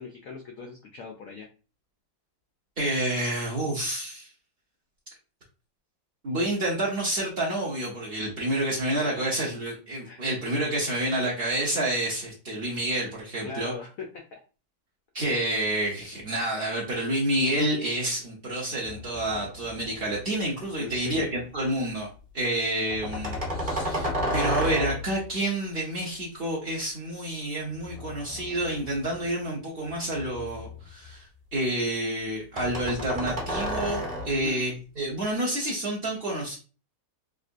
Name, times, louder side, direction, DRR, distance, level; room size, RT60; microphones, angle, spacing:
voice 1, 0.0-1.5 8.7-9.2 10.0-10.2 13.4-14.4 20.8-21.3 34.3-34.6, left 5 dB, 85° left, 1 dB, 0.7 m, -40 dB
voice 2, 2.8-4.3 6.2-13.7 15.1-22.1 22.3-36.6, right 1 dB, 60° right, -5 dB, 0.5 m, -29 dB
sound 1, 18.9-20.2 20.6-21.3 22.9-25.3 27.8-29.3 29.9-31.1 32.6-34.5, equal, 25° right, 0.8 m, -32 dB
3.7 x 2.5 x 2.5 m, 0.35 s
omnidirectional pair, 2.1 m